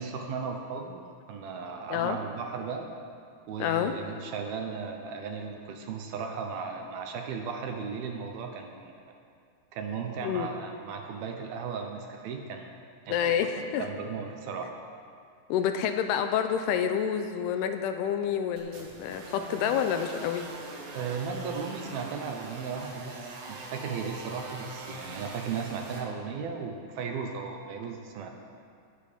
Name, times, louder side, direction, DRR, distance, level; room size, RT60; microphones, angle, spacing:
voice 1, 0.0-2.9 3.5-9.0 9.7-12.7 13.1-14.7 20.9-28.3, right 5 dB, 75° right, 3 dB, 2.5 m, -36 dB
voice 2, 3.6-4.0 10.2-10.5 13.1-13.9 15.5-20.5, left 8 dB, 80° left, 7 dB, 2.6 m, -28 dB
sound 1, 18.6-26.0, right 3 dB, 90° right, 4.2 m, -42 dB
18.0 x 9.1 x 5.2 m, 2.3 s
omnidirectional pair, 4.9 m